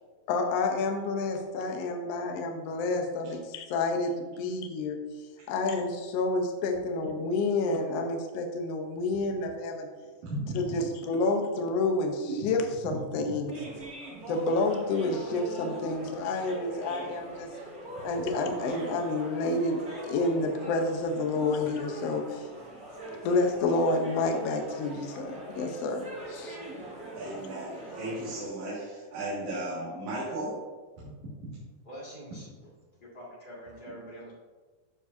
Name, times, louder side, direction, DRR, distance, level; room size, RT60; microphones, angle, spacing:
voice 1, 0.3-5.0 5.5-9.9 10.5-13.5 14.3-17.5 18.0-22.5 23.2-26.6, left 3 dB, 85° left, 4 dB, 1.4 m, -29 dB
voice 2, 10.2-10.8 13.2-13.3 27.1-30.6 31.0-31.6, right 1 dB, 60° right, -10 dB, 3.2 m, -36 dB
sound 1, 13.5-28.5, right 1 dB, 25° right, 1.9 m, -42 dB
voice 3, 31.8-32.7 33.0-34.3, equal, 20° left, -6 dB, 1.4 m, -45 dB
13.5 x 5.0 x 2.7 m, 1.4 s
omnidirectional pair, 4.1 m